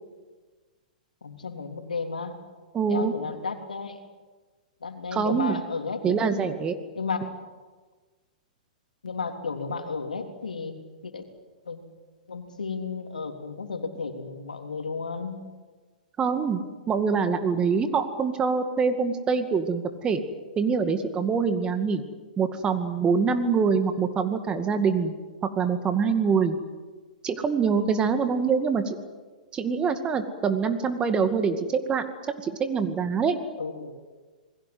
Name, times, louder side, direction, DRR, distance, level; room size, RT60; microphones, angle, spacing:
voice 1, 1.2-2.4 2.9-4.0 4.8-6.4 7.0-7.3 9.0-10.7 11.0-11.2 11.7-11.8 12.3-15.4 33.6-33.9, left 4 dB, 80° left, 5 dB, 3.4 m, -33 dB
voice 2, 2.7-3.1 5.1-5.6 6.0-6.8 16.2-16.6 16.9-20.2 20.6-22.0 22.4-25.1 25.6-26.6 27.2-29.0 29.5-32.0 32.4-33.4, right 5 dB, 20° right, 8 dB, 2.2 m, -24 dB
28.0 x 21.0 x 7.9 m, 1.3 s
figure-of-eight pair, 110°, 4 cm